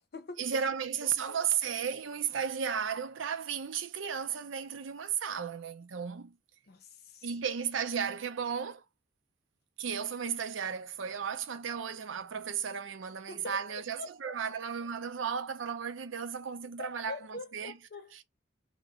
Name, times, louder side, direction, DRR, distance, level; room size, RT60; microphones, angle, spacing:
voice 1, 0.4-6.3 7.2-8.8 9.8-17.8, right 7 dB, 80° right, 0.5 m, -34 dB
voice 2, 1.0-1.4 6.7-7.3 13.3-14.3 16.8-18.3, left 3 dB, 55° left, 0.7 m, -44 dB
2.9 x 2.2 x 3.6 m
head